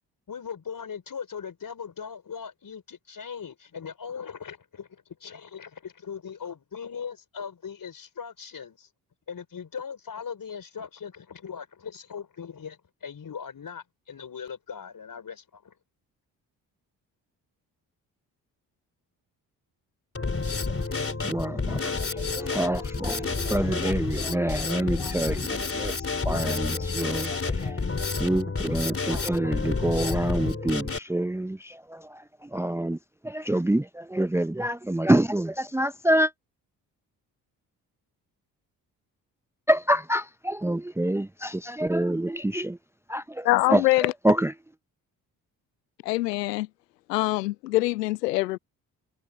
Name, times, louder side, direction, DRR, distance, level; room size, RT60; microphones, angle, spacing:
voice 1, 0.3-8.9 9.3-15.7, left 6 dB, 45° left, 5.3 m, -39 dB
Drum kit, 20.1-31.0, left 4 dB, 30° left, 3.8 m, -29 dB
voice 2, 20.7-26.0 26.2-27.8 28.2-33.0 33.2-36.3 39.7-42.8 43.1-43.8 44.2-44.5, right 1 dB, 5° right, 0.9 m, -27 dB
voice 3, 43.4-44.1 46.0-46.7 47.1-48.6, left 18 dB, 85° left, 0.7 m, -24 dB
figure-of-eight pair, 40°, 48 cm